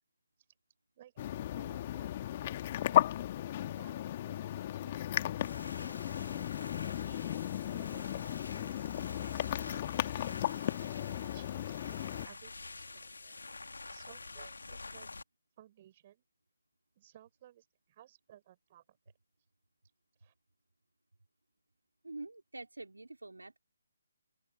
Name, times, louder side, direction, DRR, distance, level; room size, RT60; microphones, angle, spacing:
voice 1, 1.0-3.0 3.6-5.3 5.6-7.2 7.7-8.3 8.5-9.7 10.8-13.4 13.9-15.1 15.6-16.2 17.0-19.0 20.2-20.3, right 12 dB, 30° right, 6.9 m, -60 dB
sound 1, 1.2-12.3, left 12 dB, 30° left, 2.0 m, -35 dB
sound 2, 5.4-15.2, left 3 dB, 65° left, 2.2 m, -47 dB
voice 2, 22.0-23.6, right 2 dB, 75° right, 3.2 m, -46 dB
open air
figure-of-eight pair, 145°, 0 cm